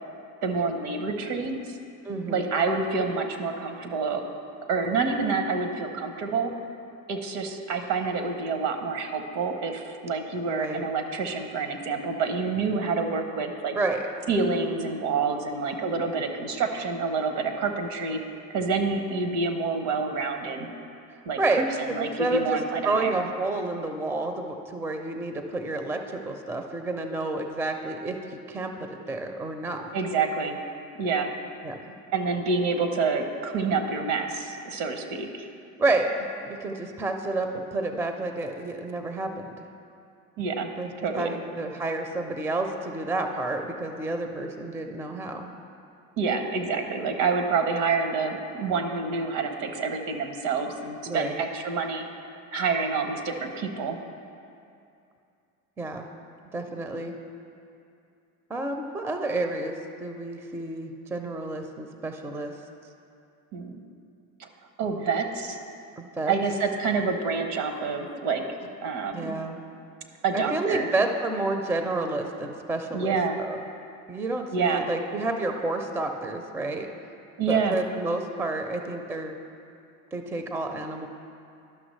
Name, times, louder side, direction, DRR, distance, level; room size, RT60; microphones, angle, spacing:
voice 1, 0.4-1.6 2.3-4.2 4.7-6.5 7.1-13.8 14.3-18.2 18.5-20.7 21.2-21.4 21.8-23.3 29.9-30.6 31.0-31.3 32.1-35.5 40.4-40.7 41.0-41.3 46.2-52.0 52.5-54.0 63.5-63.8 64.4-64.5 64.8-65.6 66.3-68.4 68.8-69.4 70.2-70.9 72.9-73.4 74.5-74.9 77.4-77.8, right 4 dB, 70° right, 5 dB, 1.0 m, -27 dB
voice 2, 2.0-2.5 10.5-10.8 13.8-14.0 21.4-29.9 31.6-32.0 35.8-36.1 36.4-39.7 40.8-45.5 51.1-51.4 55.8-56.1 56.5-57.1 58.5-62.5 66.0-66.4 69.1-69.6 70.3-73.6 74.1-76.9 77.5-79.3 80.1-81.1, right 2 dB, 5° right, 5 dB, 0.4 m, -30 dB
11.5 x 5.9 x 3.2 m, 2.6 s
hypercardioid pair, 80°, 43 cm